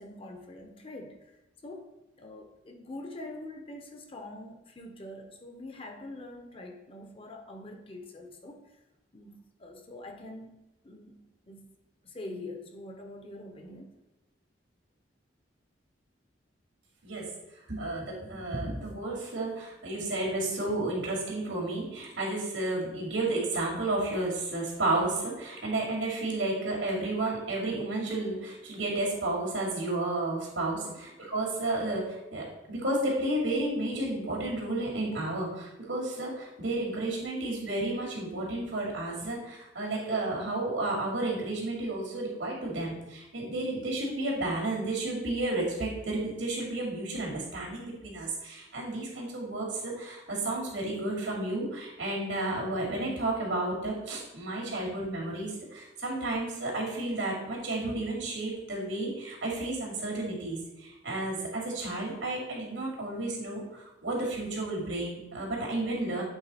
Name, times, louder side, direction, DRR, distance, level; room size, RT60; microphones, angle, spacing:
voice 1, 0.0-1.4 1.6-1.9 2.2-8.8 9.1-10.5 10.8-11.6 12.0-14.0 30.8-31.0, left 1 dB, 30° left, 4 dB, 0.7 m, -44 dB
voice 2, 17.7-66.2, right 2 dB, 90° right, -3 dB, 2.4 m, -32 dB
8.0 x 3.8 x 4.2 m, 0.96 s
head